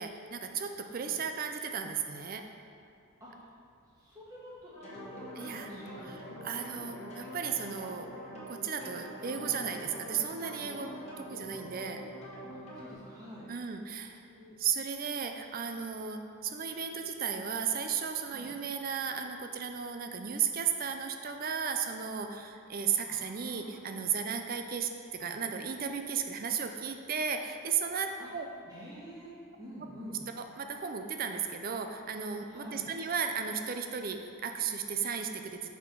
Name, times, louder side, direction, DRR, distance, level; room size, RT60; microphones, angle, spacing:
voice 1, 0.0-2.5 5.4-5.7 6.1-8.1 8.5-10.9 11.3-12.0 13.5-14.2 14.6-28.5 30.6-35.7, right 7 dB, 45° right, 6 dB, 0.5 m, -35 dB
voice 2, 0.8-1.2 3.2-3.5 4.0-6.6 9.3-9.5 10.8-10.9 12.5-13.5 13.9-14.0 14.3-14.6 18.3-18.5 23.1-23.9 25.2-25.3 28.2-28.3 28.7-30.2 32.5-32.8, equal, 20° right, -8 dB, 1.8 m, -48 dB
sound 1, 4.7-12.9, equal, 30° left, 1.5 m, -45 dB
6.0 x 5.7 x 4.6 m, 2.5 s
head